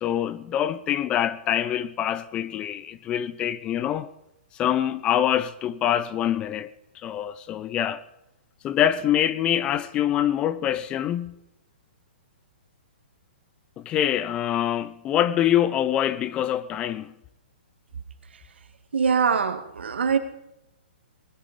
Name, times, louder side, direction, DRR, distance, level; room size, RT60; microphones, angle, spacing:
voice 1, 0.0-4.1 4.6-6.7 7.0-8.0 8.6-11.4 13.8-17.1, left 10 dB, 15° left, 0.5 m, -25 dB
voice 2, 18.9-20.2, right 6 dB, 85° right, 2.1 m, -23 dB
20.0 x 11.5 x 5.2 m
hypercardioid pair, 160°, 6 cm